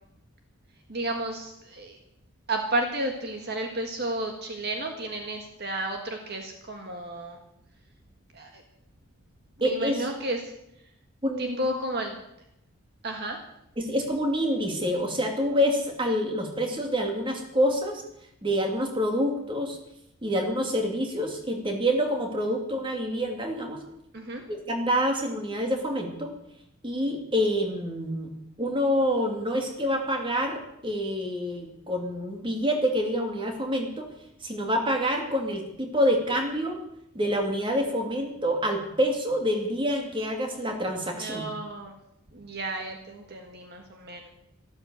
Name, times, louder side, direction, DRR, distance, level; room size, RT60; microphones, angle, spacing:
voice 1, 0.9-2.0 2.5-7.4 8.3-8.6 9.6-10.5 11.4-12.2 13.0-13.4 24.1-24.4 41.1-41.9 42.3-44.3, right 1 dB, 50° right, 3 dB, 1.7 m, -32 dB
voice 2, 9.6-10.1 11.2-11.6 13.8-18.0 18.4-19.8 20.2-23.8 24.5-26.3 26.8-28.3 28.6-34.1 34.4-36.8 37.1-41.5, equal, 25° right, 3 dB, 2.5 m, -27 dB
13.5 x 13.0 x 8.0 m, 0.81 s
head